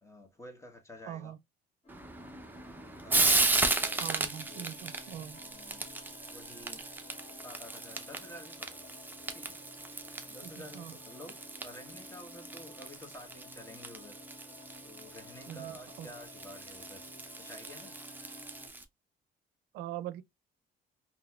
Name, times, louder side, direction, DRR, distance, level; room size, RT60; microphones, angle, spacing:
voice 1, 0.0-1.4 2.8-4.7 5.4-5.9 6.3-6.9 7.4-8.9 9.3-9.6 10.3-11.4 11.6-14.2 14.8-17.0 17.4-18.0, equal, 15° left, 1.3 m, -50 dB
voice 2, 1.1-1.4 4.0-5.4 10.4-10.9 15.5-16.1 19.7-20.2, right 12 dB, 80° right, 0.5 m, -42 dB
sound 1, 1.8-18.7, left 1 dB, 30° left, 1.6 m, -53 dB
Frying (food), 1.9-18.8, right 3 dB, 10° right, 0.7 m, -35 dB
4.0 x 2.9 x 2.4 m
cardioid pair, 110°, 17 cm